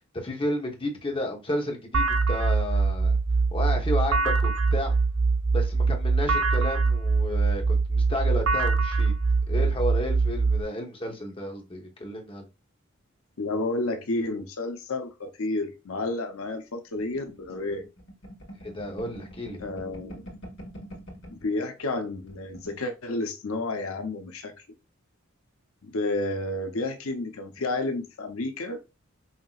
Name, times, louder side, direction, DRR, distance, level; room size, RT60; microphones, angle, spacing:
voice 1, 0.1-3.2 3.5-4.9 5.5-9.1 9.5-12.5 18.6-19.6, left 1 dB, 25° left, 1.0 m, -32 dB
sound 1, 1.9-10.6, right 4 dB, 85° right, 0.6 m, -23 dB
voice 2, 13.4-17.9 19.6-20.3 21.3-24.5 25.8-28.8, left 2 dB, 80° left, 0.8 m, -31 dB
sound 2, 17.0-21.5 21.8-22.0 22.2-22.8, equal, 60° left, 1.6 m, -44 dB
5.7 x 2.8 x 2.4 m
head